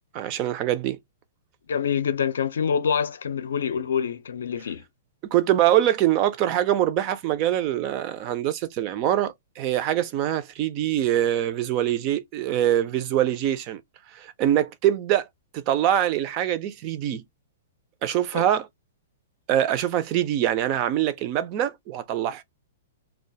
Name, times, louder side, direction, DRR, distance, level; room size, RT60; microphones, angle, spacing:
voice 1, 0.1-1.0 5.3-13.8 14.1-15.3 15.5-17.2 18.0-18.7 19.5-22.4, right 12 dB, 25° right, 0.3 m, -24 dB
voice 2, 1.7-4.8, left 7 dB, 85° left, 0.5 m, -26 dB
2.3 x 2.1 x 2.6 m
hypercardioid pair, 175°, 0 cm